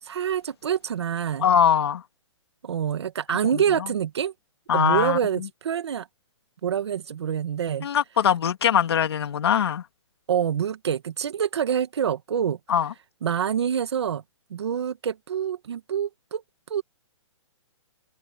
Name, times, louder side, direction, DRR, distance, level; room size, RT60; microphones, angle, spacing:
voice 1, 0.0-1.5 2.6-4.3 4.7-6.1 6.6-7.9 10.3-12.6 13.2-14.2 14.5-16.4 16.7-16.8, right 8 dB, 55° right, 1.4 m, -26 dB
voice 2, 1.4-2.0 3.5-3.6 4.7-5.5 7.8-9.8 12.7-12.9, left 8 dB, 55° left, 2.2 m, -22 dB
open air
hypercardioid pair, 175°, 16 cm